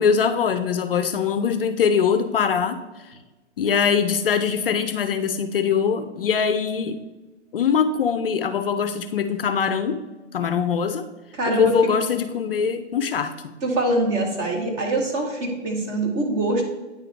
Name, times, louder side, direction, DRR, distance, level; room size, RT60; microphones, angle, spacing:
voice 1, 0.0-3.2 3.6-7.0 7.5-10.0 10.3-11.0 11.5-13.3, left 6 dB, 50° left, 9 dB, 0.4 m, -22 dB
voice 2, 11.3-11.7 13.6-16.6, right 2 dB, 20° right, 1 dB, 0.9 m, -24 dB
9.2 x 3.8 x 3.2 m, 1.2 s
figure-of-eight pair, 125°, 36 cm